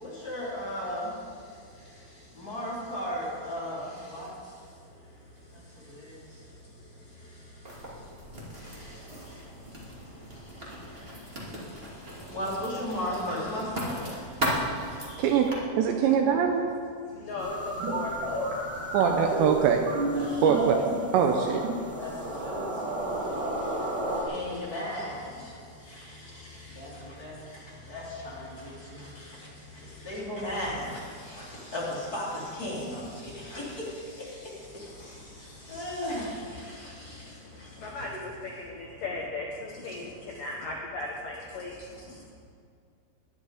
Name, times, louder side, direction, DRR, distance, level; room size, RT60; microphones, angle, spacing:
voice 1, 0.2-1.0 2.4-3.8 4.1-4.3 12.3-13.9 20.1-20.3 22.0-22.1 22.5-22.6 24.3-25.1 27.2-27.3 27.9-28.4 30.1-30.8 31.7-31.8 32.1-32.3 32.6-33.0 33.5-33.6 35.7-36.3, left 1 dB, 20° left, -7 dB, 3.3 m, -33 dB
Writing, 7.6-15.5, equal, 25° right, 1.2 m, -37 dB
voice 2, 15.2-15.5 15.8-16.7 18.9-19.9 20.4-20.9 21.1-21.7, right 7 dB, 80° right, 4 dB, 2.7 m, -23 dB
voice 3, 17.2-18.6 37.8-42.3, left 2 dB, 70° left, -1 dB, 2.2 m, -37 dB
sound 1, 17.4-24.2, right 1 dB, 50° right, 3.4 m, -31 dB
19.0 x 11.0 x 5.0 m, 2.2 s
omnidirectional pair, 5.7 m